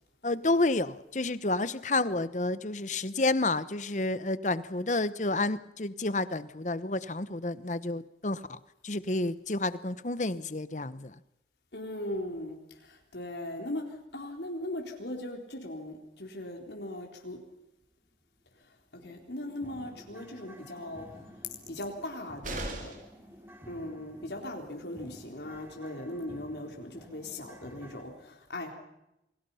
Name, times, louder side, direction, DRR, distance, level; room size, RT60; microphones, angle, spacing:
voice 1, 0.2-11.1, left 2 dB, 40° left, 15 dB, 1.0 m, -30 dB
voice 2, 11.7-13.9 14.1-17.4 19.0-21.1 21.7-22.9 23.7-28.7, left 1 dB, 75° left, 2 dB, 4.1 m, -39 dB
sound 1, 18.0-18.1 18.5-18.6 19.0-28.0, equal, 10° right, 3.1 m, -51 dB
sound 2, 22.4-23.2 25.1-25.2 25.5-25.6, right 2 dB, 45° right, 4.2 m, -37 dB
28.5 x 22.5 x 5.7 m, 0.88 s
head